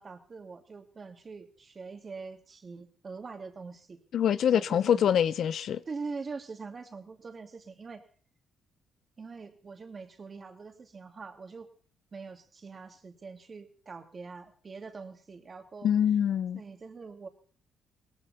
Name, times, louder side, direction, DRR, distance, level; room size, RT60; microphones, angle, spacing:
voice 1, 0.0-4.0 4.5-5.1 5.4-5.5 5.9-8.0 9.2-11.7 12.1-15.9 16.5-17.3, right 4 dB, 35° right, 2.7 m, -43 dB
voice 2, 4.1-5.8 15.8-16.6, left 9 dB, 65° left, 0.6 m, -25 dB
18.5 x 14.5 x 4.4 m
cardioid pair, 95°, 0 cm